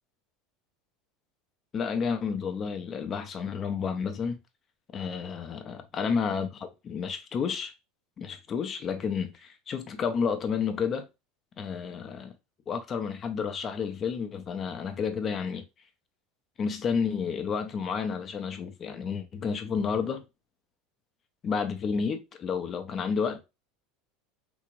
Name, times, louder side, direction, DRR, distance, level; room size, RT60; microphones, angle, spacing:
voice 1, 1.7-4.4 4.9-7.7 8.2-11.0 11.6-12.3 12.7-15.6 16.6-20.2 21.4-23.4, left 6 dB, 35° left, 0.6 m, -31 dB
3.4 x 2.5 x 3.1 m
supercardioid pair, 120°, 0 cm